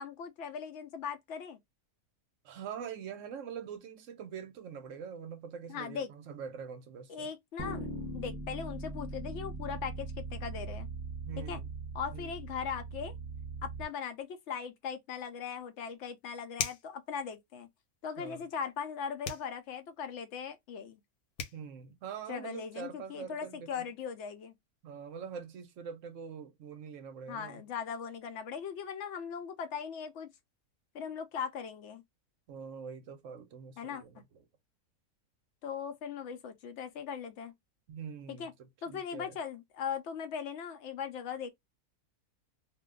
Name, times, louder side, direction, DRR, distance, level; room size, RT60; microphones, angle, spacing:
voice 1, 0.0-1.6 5.7-6.1 7.1-10.9 11.4-11.6 11.9-13.1 13.6-17.7 18.0-21.0 22.3-24.5 27.3-30.3 30.9-32.0 33.8-34.0 35.6-37.5 38.3-38.5 38.8-41.5, left 7 dB, 65° left, 0.8 m, -39 dB
voice 2, 2.4-7.3 11.2-11.7 12.1-12.3 18.2-18.4 21.5-23.9 24.8-27.6 32.5-34.4 37.9-39.4, right 7 dB, 65° right, 0.9 m, -44 dB
sound 1, 7.6-13.8, right 3 dB, 20° right, 0.6 m, -40 dB
sound 2, 16.5-17.0 19.2-19.5 21.0-21.1 21.4-21.6, left 6 dB, 85° left, 1.2 m, -36 dB
2.6 x 2.2 x 3.6 m
omnidirectional pair, 1.6 m